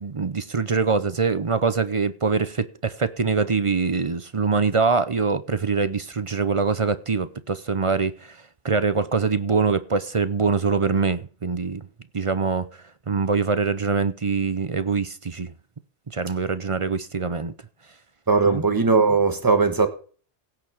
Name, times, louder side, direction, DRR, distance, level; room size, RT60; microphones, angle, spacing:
voice 1, 0.0-8.4 8.6-11.9 12.1-12.7 13.1-15.5 16.1-17.5 18.5-18.6, right 5 dB, 35° right, 0.6 m, -24 dB
voice 2, 18.3-19.9, right 4 dB, 20° right, 1.4 m, -19 dB
16.5 x 7.0 x 4.7 m
omnidirectional pair, 1.2 m